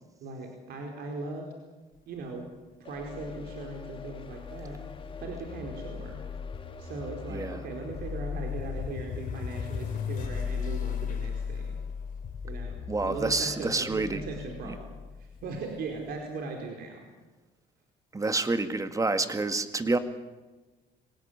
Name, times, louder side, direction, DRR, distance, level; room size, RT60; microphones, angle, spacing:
voice 1, 0.2-1.5 2.1-2.5 2.8-4.8 5.2-6.2 6.8-11.8 12.4-14.9 15.2-17.0, right 3 dB, 70° right, 2 dB, 4.5 m, -39 dB
sound 1, 2.8-12.9, left 5 dB, 30° left, 1.7 m, -49 dB
sound 2, 2.9-16.1, left 7 dB, 50° left, 4.2 m, -37 dB
voice 2, 7.3-7.6 12.9-14.2 14.7-14.8 18.1-20.0, right 3 dB, 20° right, 9 dB, 1.9 m, -28 dB
24.5 x 18.0 x 9.8 m, 1.2 s
cardioid pair, 110°, 17 cm